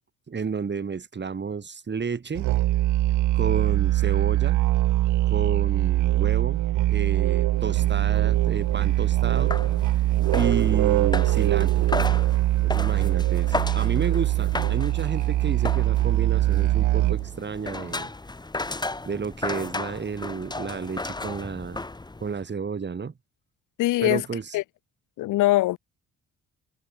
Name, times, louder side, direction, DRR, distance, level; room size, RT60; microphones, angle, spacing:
voice 1, 0.3-2.5 3.3-4.6 5.3-9.6 10.3-11.9 12.6-18.1 19.1-21.8 22.2-23.1 24.0-24.6, right 5 dB, 35° right, 4.2 m, -31 dB
Musical instrument, 2.3-17.4, right 16 dB, 75° right, 0.6 m, -22 dB
sound 1, 7.5-22.4, left 2 dB, 15° left, 1.6 m, -35 dB
voice 2, 23.8-24.2 24.5-24.6 25.2-25.8, left 17 dB, 90° left, 1.3 m, -21 dB
cardioid pair, 90°, 30 cm